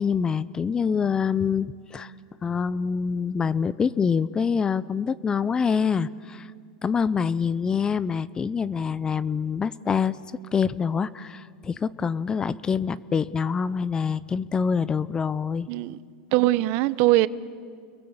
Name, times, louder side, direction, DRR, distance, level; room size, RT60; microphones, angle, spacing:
voice 1, 0.0-2.1 2.4-6.5 6.8-10.2 10.5-15.7, left 6 dB, 20° left, 0.6 m, -25 dB
voice 2, 15.7-16.0 16.3-17.3, right 17 dB, 55° right, 0.8 m, -21 dB
30.0 x 22.5 x 7.2 m
supercardioid pair, 130°, 4 cm